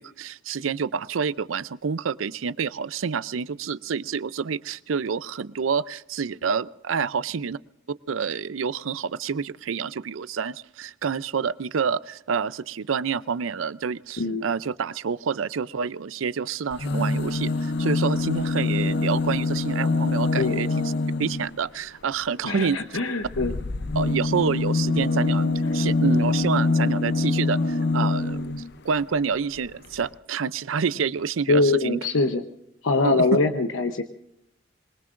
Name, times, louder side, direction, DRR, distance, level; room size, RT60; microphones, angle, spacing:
voice 1, 0.0-7.6 8.1-20.9 21.2-23.0 23.9-28.5 28.8-32.0 33.0-33.3, right 6 dB, 90° right, 17 dB, 0.5 m, -28 dB
sound 1, 16.7-21.6 23.2-28.7 29.7-29.8 30.0-30.1, left 3 dB, 55° left, 0.6 m, -24 dB
voice 2, 22.4-23.5 31.5-32.4 32.8-34.0, left 3 dB, 90° left, 6 dB, 0.9 m, -23 dB
26.0 x 22.0 x 2.5 m, 0.81 s
head